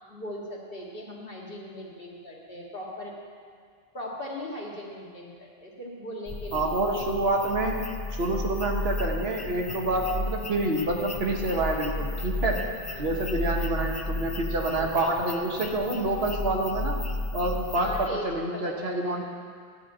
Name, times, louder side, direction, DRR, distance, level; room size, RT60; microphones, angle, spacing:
voice 1, 0.0-3.2 3.9-6.8 12.9-13.3 14.7-15.1 17.6-19.2, left 1 dB, 60° left, -3 dB, 2.0 m, -39 dB
sound 1, 6.3-18.1, left 2 dB, 30° left, 0.5 m, -33 dB
voice 2, 6.5-7.8 8.1-12.7 13.0-17.0 17.3-19.2, right 2 dB, 80° right, 1 dB, 1.4 m, -27 dB
12.0 x 5.1 x 8.6 m, 2.1 s
omnidirectional pair, 1.0 m